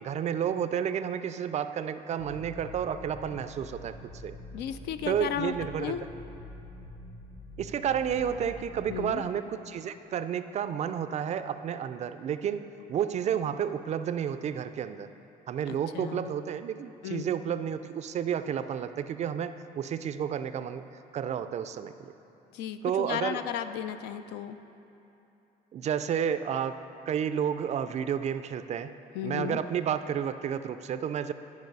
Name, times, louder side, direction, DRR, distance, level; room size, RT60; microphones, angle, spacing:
voice 1, 0.0-4.4 5.1-6.0 7.6-15.1 15.5-20.9 21.1-22.1 22.8-23.4 25.7-26.8 27.1-28.9 29.2-31.3, right 8 dB, 40° right, 11 dB, 0.4 m, -31 dB
sound 1, 2.2-9.2, left 1 dB, 45° left, 1.1 m, -46 dB
voice 2, 4.5-5.5 5.8-6.0 8.9-9.2 15.7-16.3 17.0-17.2 22.5-24.6 29.1-29.6, left 9 dB, 80° left, 10 dB, 0.4 m, -34 dB
11.5 x 4.7 x 5.3 m, 3.0 s
cardioid pair, 110°, 17 cm